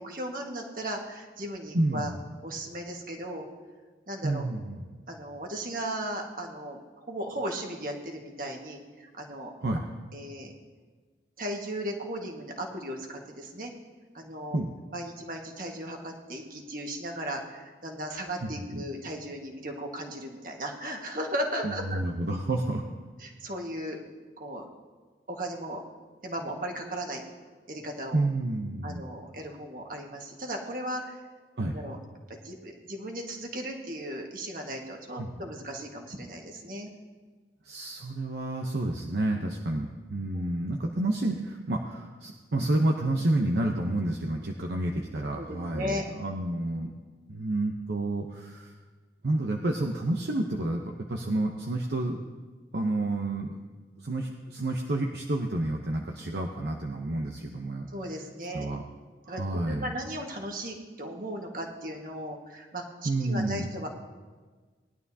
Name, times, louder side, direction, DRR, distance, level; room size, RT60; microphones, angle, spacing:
voice 1, 0.0-2.1 2.4-3.5 4.1-4.4 5.1-9.5 10.1-10.5 11.4-13.7 14.1-14.6 14.9-22.0 23.2-24.0 24.4-24.7 25.3-25.8 26.2-27.2 27.7-28.2 28.8-31.2 31.7-32.0 32.3-36.9 40.3-40.4 45.3-46.0 57.9-58.7 59.3-63.9, right 1 dB, 50° right, 1 dB, 1.6 m, -36 dB
voice 2, 1.7-2.2 4.2-4.8 9.6-9.8 14.5-14.7 18.4-18.8 21.6-22.8 28.1-29.1 31.6-31.8 35.2-35.3 37.6-46.9 47.3-48.7 49.2-50.8 51.1-52.2 52.7-53.6 54.0-57.9 58.5-58.8 59.2-59.9 63.0-63.7, right 2 dB, 65° right, 1 dB, 0.8 m, -29 dB
19.0 x 11.5 x 2.8 m, 1.4 s
head